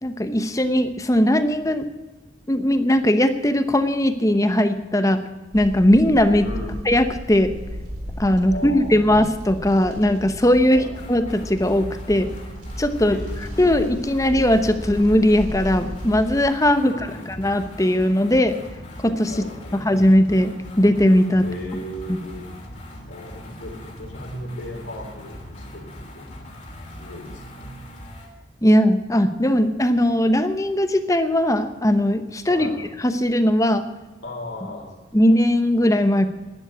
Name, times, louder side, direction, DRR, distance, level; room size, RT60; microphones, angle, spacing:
voice 1, 0.0-1.9 2.5-5.2 5.5-6.5 6.9-7.5 8.2-12.3 12.8-13.2 13.6-16.9 17.3-18.6 19.0-19.3 19.8-21.4 22.1-22.2 28.6-32.7 33.0-33.8 35.1-36.3, left 1 dB, 15° left, 9 dB, 0.9 m, -19 dB
sound 1, 5.5-16.4, equal, 50° right, 4.5 m, -35 dB
voice 2, 6.4-6.8 8.4-9.3 10.7-10.9 13.0-13.9 16.8-17.4 19.3-19.8 21.4-22.5 23.1-26.3 27.0-27.8 32.5-32.8 34.2-34.9, left 1 dB, 85° left, -2 dB, 4.2 m, -36 dB
sound 2, 10.9-28.3, left 1 dB, 40° left, 3.1 m, -40 dB
12.0 x 10.5 x 9.8 m, 1.2 s
head